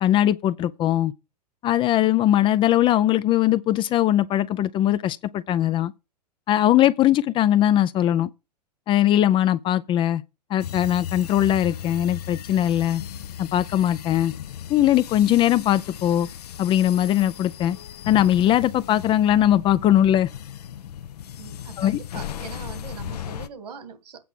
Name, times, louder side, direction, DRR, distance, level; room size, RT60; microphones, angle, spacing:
voice 1, 0.0-1.1 1.6-5.9 6.5-8.3 8.9-10.2 10.5-13.0 13.4-14.3 14.7-16.3 16.6-17.8 18.1-20.3 21.8-22.0, left 12 dB, 25° left, 0.4 m, -20 dB
sound 1, 10.6-23.5, left 10 dB, 65° left, 0.7 m, -36 dB
voice 2, 21.4-24.2, right 6 dB, 70° right, 2.2 m, -41 dB
8.5 x 5.8 x 6.0 m
figure-of-eight pair, 105°, 21 cm